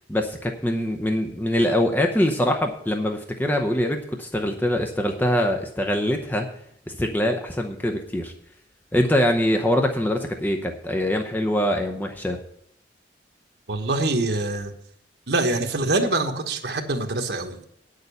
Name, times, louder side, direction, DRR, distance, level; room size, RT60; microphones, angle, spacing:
voice 1, 0.1-6.5 6.9-8.3 8.9-12.4, left 1 dB, 10° left, 3 dB, 0.7 m, -23 dB
voice 2, 13.7-14.7 15.3-17.7, right 2 dB, 65° right, 3 dB, 1.3 m, -24 dB
9.4 x 6.6 x 6.7 m, 0.70 s
head